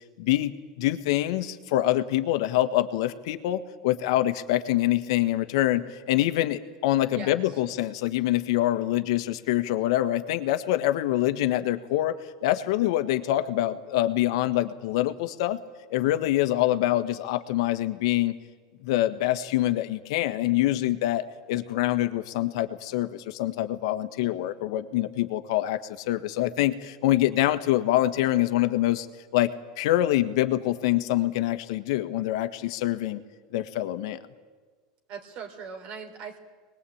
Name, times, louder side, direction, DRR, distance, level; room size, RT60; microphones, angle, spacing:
voice 1, 0.2-12.1 12.4-15.6 15.9-18.3 18.8-29.1 29.3-29.5 29.8-33.2 33.5-34.2, left 14 dB, 75° left, 10 dB, 1.5 m, -25 dB
voice 2, 7.1-7.6 35.1-36.4, right 6 dB, 55° right, 3 dB, 3.6 m, -40 dB
24.0 x 20.5 x 8.7 m, 1.4 s
supercardioid pair, 105°, 3 cm